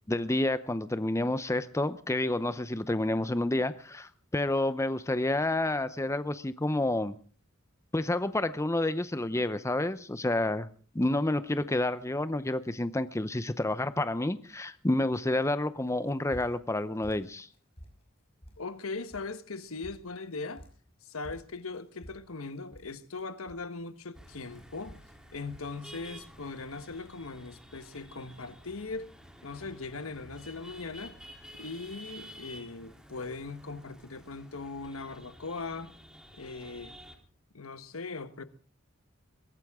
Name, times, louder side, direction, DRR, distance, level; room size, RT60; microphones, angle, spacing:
voice 1, 0.1-7.2 7.9-10.7 10.9-17.5, left 1 dB, 15° left, 0.7 m, -29 dB
sound 1, 15.9-16.8 17.0-18.1 18.4-18.9 19.1-19.3 19.6-20.9 21.2-23.9 24.2-25.1 25.4-25.7, equal, 30° left, 5.9 m, -50 dB
voice 2, 18.6-20.6 21.0-25.0 25.3-29.1 29.4-31.1 31.6-35.9 36.3-37.0 37.5-38.4, left 3 dB, 80° left, 1.2 m, -40 dB
sound 2, 24.1-37.2, equal, 5° right, 3.2 m, -51 dB
22.5 x 16.5 x 3.7 m
head